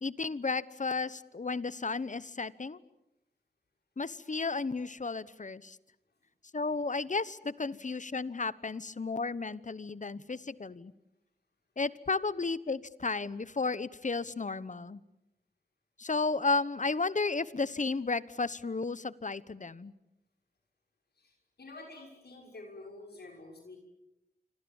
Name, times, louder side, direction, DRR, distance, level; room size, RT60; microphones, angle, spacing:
voice 1, 0.0-2.8 4.0-5.8 6.5-10.9 11.8-15.0 16.0-19.9, left 3 dB, 50° left, 18 dB, 1.0 m, -33 dB
voice 2, 21.2-23.8, left 2 dB, 85° left, 1 dB, 6.2 m, -49 dB
27.5 x 26.5 x 7.2 m, 0.87 s
wide cardioid pair, 55°, 16 cm